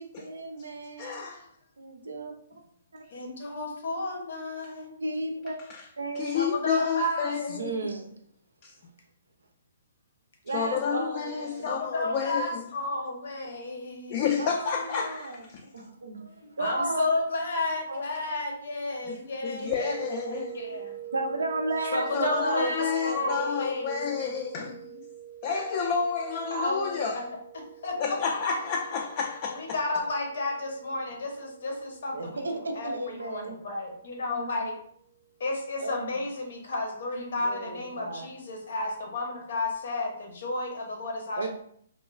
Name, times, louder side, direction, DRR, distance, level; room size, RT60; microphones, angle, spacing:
voice 1, 0.0-1.2 1.8-2.3 5.0-5.6 6.0-6.4 6.8-6.9 7.5-8.1 10.4-11.7 14.4-15.4 15.7-17.1 17.9-18.0 21.1-23.8 32.1-33.6 35.8-36.1 37.4-38.3 41.4-41.5, right 2 dB, 85° right, 0.5 m, -33 dB
voice 2, 1.0-1.5 6.1-7.7 8.6-8.7 10.5-12.7 14.1-15.6 19.1-19.2 19.4-20.5 22.1-25.1 25.4-27.3 28.0-29.8, left 6 dB, 40° left, 0.3 m, -30 dB
voice 3, 3.1-4.9 6.3-7.3 11.6-14.4 16.6-20.9 21.9-24.3 26.5-27.2 27.5-28.2 29.5-32.9 33.2-34.8 35.4-41.5, left 2 dB, 65° left, 0.7 m, -32 dB
sound 1, 19.7-34.6, right 10 dB, 85° left, 1.1 m, -45 dB
3.0 x 2.2 x 2.3 m
hypercardioid pair, 135°, 0 cm